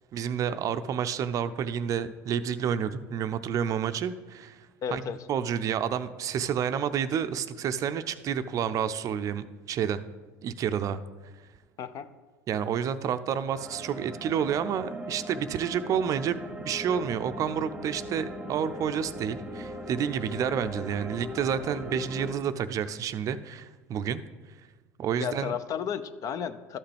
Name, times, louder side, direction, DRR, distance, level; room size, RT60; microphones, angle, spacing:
voice 1, 0.1-4.6 4.9-5.0 5.3-10.0 10.4-11.0 12.5-24.2 25.0-25.5, right 8 dB, 45° right, 11 dB, 0.5 m, -29 dB
voice 2, 4.8-5.3 11.8-12.1 25.2-26.8, left 8 dB, 45° left, 13 dB, 0.5 m, -33 dB
sound 1, 13.5-22.3, equal, 10° right, 0.9 m, -39 dB
12.5 x 5.7 x 3.4 m, 1.3 s
supercardioid pair, 90°, 8 cm